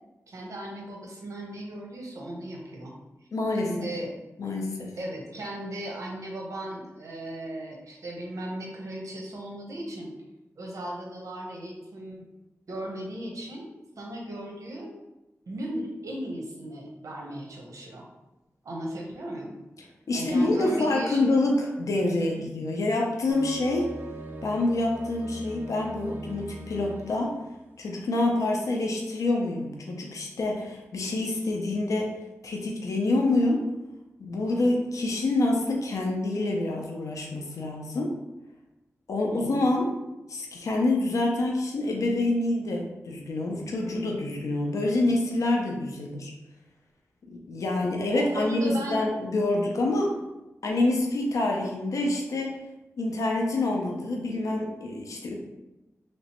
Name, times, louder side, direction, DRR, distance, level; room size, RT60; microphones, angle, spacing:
voice 1, 0.3-2.9 3.6-4.1 5.0-10.1 10.6-12.2 12.7-13.7 14.0-15.0 15.5-18.1 18.6-19.6 20.1-21.4 22.2-22.5 39.3-39.6 48.1-49.0, right 1 dB, 80° right, -1 dB, 0.8 m, -36 dB
voice 2, 3.3-3.9 4.4-5.0 20.1-23.9 24.4-27.3 27.8-32.1 32.4-33.7 34.2-38.1 39.1-39.9 40.3-46.3 47.3-50.1 50.6-52.5 53.0-55.3, left 2 dB, 85° left, 0 dB, 0.5 m, -27 dB
sound 1, 23.3-27.4, right 2 dB, 35° right, 0.4 m, -40 dB
3.1 x 2.9 x 2.9 m, 1.0 s
wide cardioid pair, 115°, 5 cm